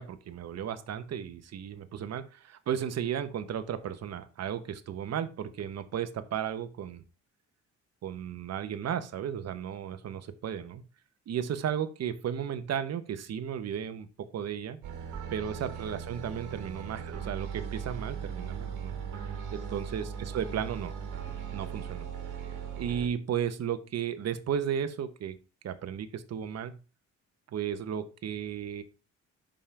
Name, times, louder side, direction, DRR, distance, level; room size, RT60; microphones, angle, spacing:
voice 1, 0.0-7.0 8.0-10.8 11.3-14.8 15.3-19.0 19.5-20.9 21.5-22.1 22.8-25.4 25.6-26.7 27.5-28.8, right 8 dB, 60° right, 11 dB, 1.0 m, -34 dB
sound 1, 14.8-23.1, right 7 dB, 85° right, 1.5 m, -38 dB
5.5 x 5.1 x 5.7 m, 0.34 s
cardioid pair, 90°, 30 cm